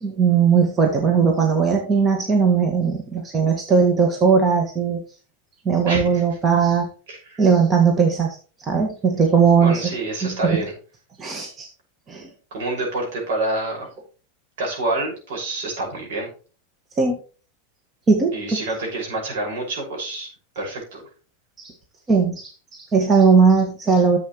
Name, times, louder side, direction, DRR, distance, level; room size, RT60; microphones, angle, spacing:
voice 1, 0.0-5.0 5.7-6.9 7.4-8.4 8.6-9.9 10.2-10.6 11.2-11.7 12.1-12.3 17.0-17.2 18.1-18.3 21.6-21.7 22.1-24.2, right 5 dB, 25° right, 2 dB, 1.8 m, -18 dB
voice 2, 5.9-6.2 7.1-7.4 9.6-10.7 12.5-13.9 14.6-16.3 18.3-20.3 20.6-21.0, right 2 dB, 65° right, 0 dB, 5.9 m, -27 dB
11.5 x 7.6 x 3.2 m, 0.36 s
hypercardioid pair, 95°, 0 cm